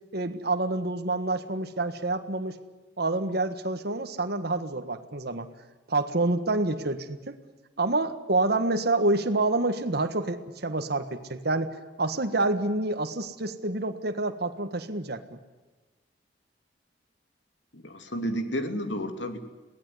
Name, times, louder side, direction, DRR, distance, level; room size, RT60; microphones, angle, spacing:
voice 1, 0.1-2.6 3.0-5.5 5.9-7.3 7.8-15.4, right 2 dB, 60° right, 8 dB, 1.6 m, -28 dB
voice 2, 17.7-19.4, equal, 80° left, 7 dB, 2.8 m, -31 dB
23.0 x 17.0 x 9.7 m, 1.2 s
head